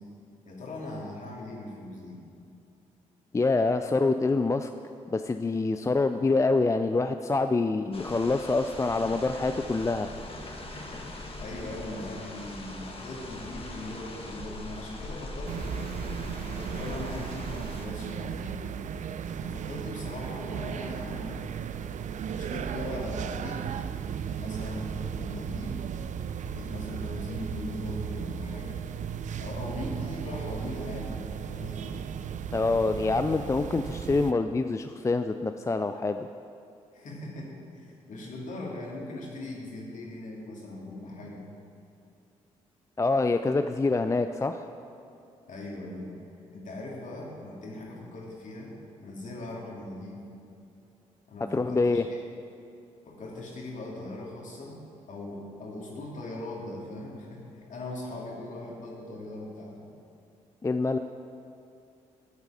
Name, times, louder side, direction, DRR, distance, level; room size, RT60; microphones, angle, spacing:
voice 1, 0.4-2.2 11.4-16.2 16.5-18.6 19.4-21.5 22.3-23.8 24.4-25.9 26.5-28.8 29.4-32.0 36.9-41.5 45.5-46.1 46.5-48.7 49.0-50.2 51.3-52.2 53.0-54.8 55.1-59.9, left 2 dB, 50° left, -3 dB, 2.9 m, -40 dB
voice 2, 3.3-4.7 5.1-10.1 32.5-36.3 43.0-44.6 51.5-52.1 60.6-61.0, left 3 dB, 20° left, 8 dB, 0.4 m, -26 dB
sound 1, 7.9-17.9, left 1 dB, 35° left, 1.6 m, -41 dB
sound 2, 15.5-34.3, right 8 dB, 50° right, 0.5 m, -35 dB
13.0 x 8.1 x 5.0 m, 2.7 s
figure-of-eight pair, 40°, 16 cm